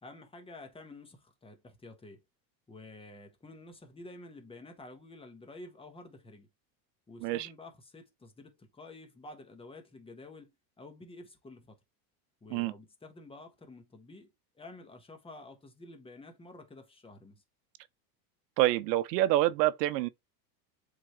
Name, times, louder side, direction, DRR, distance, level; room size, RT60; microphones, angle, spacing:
voice 1, 0.0-2.2 2.7-6.5 7.1-10.5 10.8-11.8 12.4-17.4, left 2 dB, 10° left, 1.4 m, -50 dB
voice 2, 18.6-20.1, right 15 dB, 75° right, 0.8 m, -27 dB
7.6 x 3.9 x 3.2 m
supercardioid pair, 135°, 49 cm